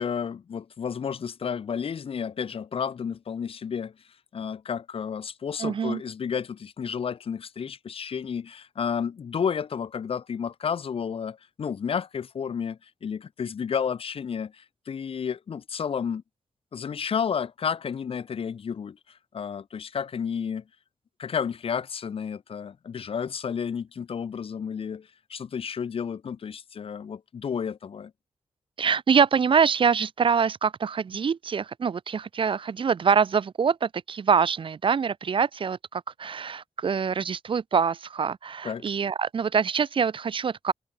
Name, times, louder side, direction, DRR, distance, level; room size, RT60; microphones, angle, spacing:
voice 1, 0.0-3.9 4.3-16.2 16.7-20.6 21.2-28.1 38.6-38.9, left 7 dB, 60° left, 3.0 m, -31 dB
voice 2, 5.6-6.0 28.8-40.7, right 6 dB, 55° right, 2.5 m, -25 dB
wide cardioid pair, 175°, 11 cm